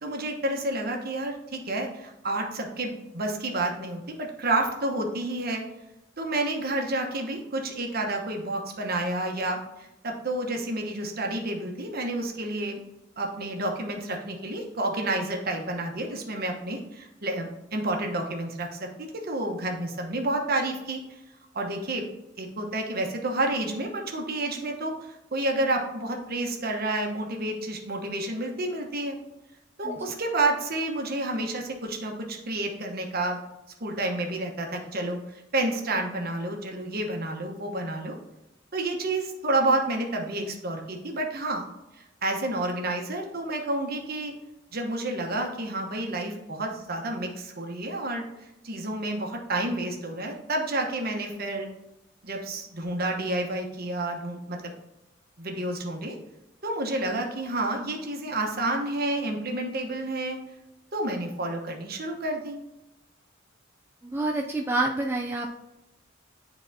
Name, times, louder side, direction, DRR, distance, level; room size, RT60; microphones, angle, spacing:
voice 1, 0.0-5.6 6.2-12.8 13.2-21.2 21.5-22.1 22.4-29.2 29.8-33.4 33.8-38.1 38.7-41.6 42.0-44.3 44.7-48.3 48.6-51.7 52.2-54.7 55.4-56.2 56.6-60.4 60.9-62.6, right 2 dB, 50° right, 2 dB, 1.0 m, -30 dB
voice 2, 64.0-65.6, right 2 dB, 10° right, 0 dB, 0.3 m, -28 dB
10.0 x 4.0 x 2.7 m, 0.92 s
head